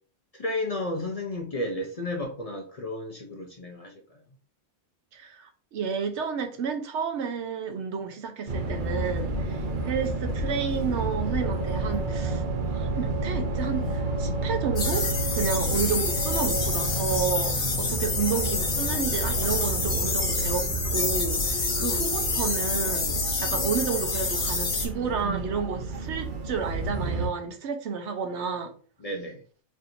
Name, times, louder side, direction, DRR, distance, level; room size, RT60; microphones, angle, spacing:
voice 1, 0.3-4.2 29.0-29.4, left 1 dB, 40° left, 0.5 m, -33 dB
voice 2, 5.1-28.7, right 6 dB, 75° right, 1.0 m, -31 dB
sound 1, 8.5-27.3, right 2 dB, 50° right, 0.8 m, -30 dB
sound 2, 14.8-24.9, left 4 dB, 60° left, 1.1 m, -28 dB
4.2 x 3.3 x 2.6 m
omnidirectional pair, 1.2 m